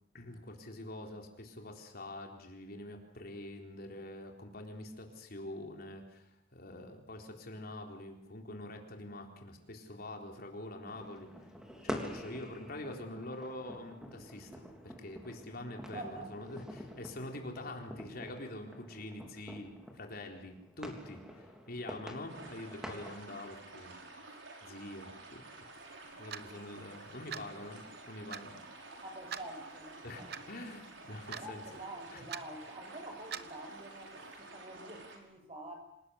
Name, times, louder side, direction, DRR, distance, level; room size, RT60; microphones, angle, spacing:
voice 1, 0.1-11.3 11.8-24.0 24.3-25.7 26.2-28.6 30.0-31.6 32.1-32.2, left 1 dB, 55° left, 4.0 m, -45 dB
sound 1, 10.9-23.2, equal, 5° right, 3.6 m, -47 dB
voice 2, 15.9-16.5 29.0-30.3 31.3-35.7, right 1 dB, 35° right, 7.3 m, -47 dB
sound 2, 22.3-35.2, right 2 dB, 85° right, 5.6 m, -51 dB
Clock, 26.3-26.5 27.3-27.5 28.3-28.5 29.3-29.5 30.3-30.4 31.3-31.5 32.3-32.4 33.3-33.5, right 8 dB, 60° right, 1.1 m, -41 dB
27.5 x 19.0 x 8.2 m
head